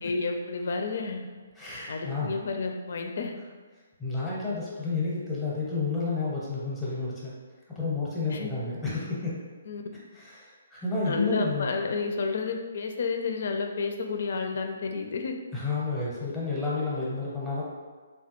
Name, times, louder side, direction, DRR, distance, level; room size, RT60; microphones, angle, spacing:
voice 1, 0.0-1.2 1.9-3.3 8.3-8.5 9.7-9.8 11.0-15.4, left 4 dB, 60° left, 4 dB, 0.4 m, -31 dB
voice 2, 1.6-2.4 4.0-7.3 7.8-9.4 10.1-11.7 15.5-17.6, left 3 dB, 5° left, -7 dB, 0.7 m, -30 dB
3.1 x 2.2 x 2.9 m, 1.4 s
hypercardioid pair, 160°, 0 cm